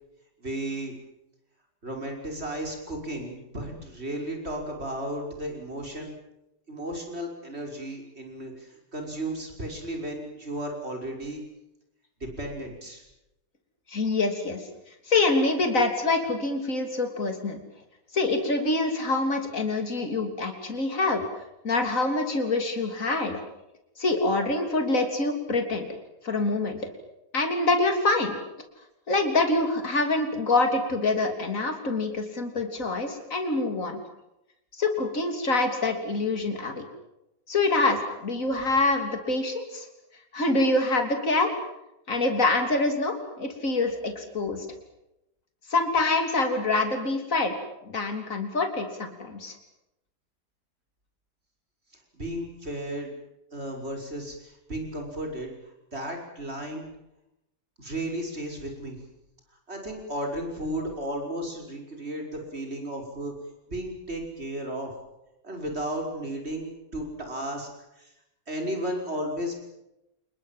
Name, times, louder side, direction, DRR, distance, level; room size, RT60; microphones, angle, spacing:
voice 1, 0.4-1.0 1.8-6.1 6.7-11.4 12.2-13.0 52.1-53.1 53.5-55.5 55.9-56.9 57.8-59.0 59.7-63.3 63.7-64.9 65.4-67.7 68.0-68.1 68.5-69.6, right 1 dB, 40° right, 2 dB, 6.1 m, -34 dB
voice 2, 13.9-14.6 15.1-17.6 18.1-21.2 21.6-23.4 24.0-25.9 26.2-26.8 27.3-28.4 29.1-34.0 34.7-36.8 37.5-39.9 40.3-41.5 42.1-44.7 45.7-47.6 47.9-49.6, left 2 dB, 50° left, 5 dB, 3.7 m, -25 dB
28.5 x 21.0 x 7.6 m, 0.88 s
omnidirectional pair, 1.8 m